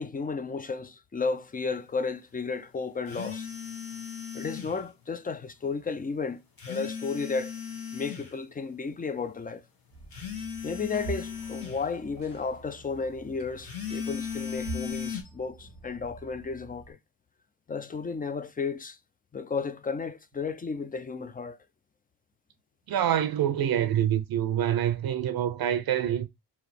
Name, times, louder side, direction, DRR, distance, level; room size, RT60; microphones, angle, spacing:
voice 1, 0.0-3.5 4.3-6.4 6.7-7.5 7.9-9.6 10.6-17.0 17.7-19.0 19.3-21.6, left 4 dB, 20° left, 0.5 m, -33 dB
sound 1, 3.1-4.8 6.6-8.3 10.1-11.8 13.6-15.2, left 7 dB, 55° left, 1.1 m, -36 dB
sound 2, 9.9-16.9, right 2 dB, 85° left, 2.0 m, -45 dB
voice 2, 22.9-26.3, right 10 dB, 55° right, 0.6 m, -26 dB
2.9 x 2.8 x 4.1 m
supercardioid pair, 60°, 43 cm